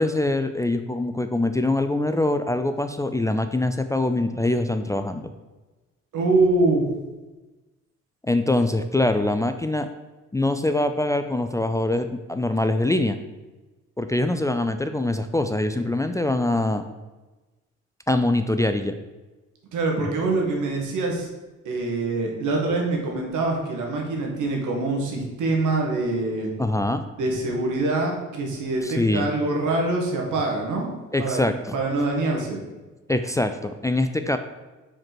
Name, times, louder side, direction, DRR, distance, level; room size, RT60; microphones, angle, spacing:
voice 1, 0.0-5.3 8.2-9.9 10.3-13.2 14.0-16.8 18.1-19.0 26.6-27.0 28.8-29.3 31.1-31.8 33.1-34.4, left 2 dB, 10° left, 8 dB, 0.4 m, -23 dB
voice 2, 6.1-6.9 19.7-21.3 21.7-26.5 27.2-30.9 31.2-31.5 31.7-32.6, right 2 dB, 80° right, 0 dB, 1.8 m, -24 dB
5.0 x 4.5 x 6.0 m, 1.2 s
cardioid pair, 90°, 30 cm